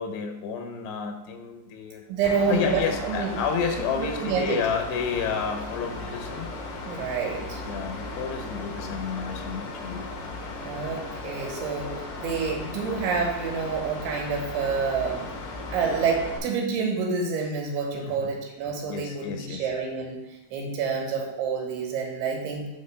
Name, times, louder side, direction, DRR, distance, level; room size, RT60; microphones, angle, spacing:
voice 1, 0.0-2.1 2.5-6.5 7.6-10.0 17.9-18.3 18.9-19.7, left 6 dB, 90° left, 5 dB, 3.0 m, -30 dB
voice 2, 2.1-3.3 4.0-4.6 6.9-7.6 10.6-15.3 15.7-22.7, right 5 dB, 75° right, -1 dB, 3.4 m, -28 dB
Mechanical fan, 2.2-16.4, left 2 dB, 75° left, 3.6 m, -36 dB
7.6 x 4.1 x 6.6 m, 0.95 s
omnidirectional pair, 4.7 m